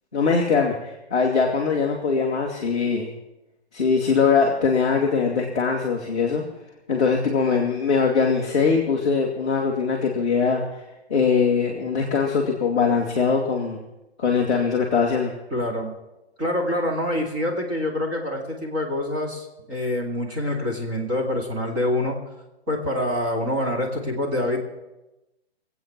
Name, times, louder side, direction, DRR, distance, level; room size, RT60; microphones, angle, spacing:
voice 1, 0.1-3.1 3.7-6.4 6.9-10.6 11.1-13.8 14.2-15.3, left 5 dB, 5° left, -9 dB, 0.5 m, -21 dB
voice 2, 15.5-15.9 16.4-22.2 22.7-24.6, left 1 dB, 20° right, -1 dB, 2.4 m, -26 dB
21.5 x 8.3 x 6.0 m, 0.99 s
hypercardioid pair, 175°, 33 cm